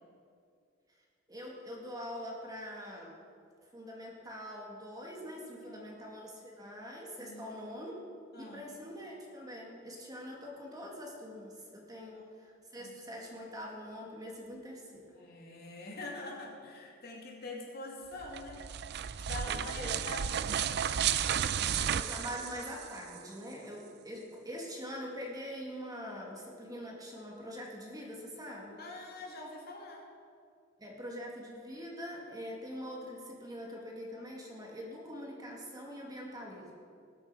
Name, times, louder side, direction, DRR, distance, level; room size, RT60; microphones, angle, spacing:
voice 1, 1.3-3.2 3.7-8.0 8.4-15.1 19.5-20.0 21.9-28.8 30.8-36.7, equal, 20° right, -1 dB, 2.2 m, -44 dB
voice 2, 5.6-6.0 7.2-7.6 8.3-8.7 9.9-10.0 12.0-12.2 12.8-12.9 15.1-18.6 18.9-20.8 28.8-30.1, left 2 dB, 55° left, -2 dB, 2.7 m, -45 dB
sound 1, 18.2-23.2, right 9 dB, 55° right, 0.4 m, -33 dB
19.5 x 8.6 x 4.9 m, 2.3 s
head